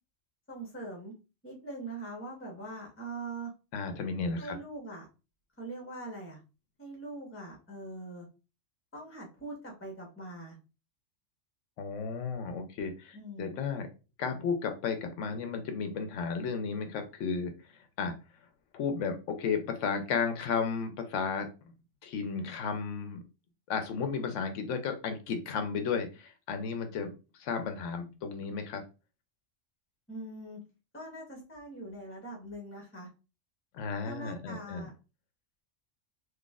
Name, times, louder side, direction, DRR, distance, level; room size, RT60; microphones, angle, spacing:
voice 1, 0.5-1.1 1.4-3.5 4.4-5.1 5.6-6.4 6.8-8.3 8.9-10.6 13.1-13.5 30.1-30.6 30.9-33.1 34.0-34.9, right 2 dB, 10° left, -1 dB, 1.1 m, -42 dB
voice 2, 3.7-4.5 11.8-13.9 14.2-18.1 18.7-21.7 22.0-23.2 23.7-27.1 27.4-28.8 33.7-34.9, left 5 dB, 85° left, 7 dB, 1.0 m, -33 dB
3.9 x 2.9 x 2.4 m, 0.31 s
omnidirectional pair, 1.3 m